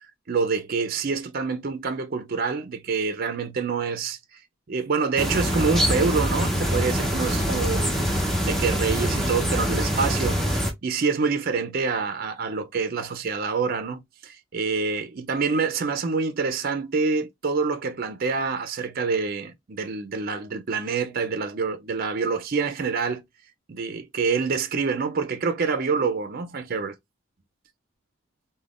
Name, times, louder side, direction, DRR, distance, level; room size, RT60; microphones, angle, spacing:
voice 1, 0.0-4.4 4.7-23.2 23.7-26.9, right 4 dB, 50° right, 0.5 m, -27 dB
sound 1, 5.2-10.7, equal, ahead, 0.7 m, -24 dB
3.4 x 2.2 x 2.4 m
head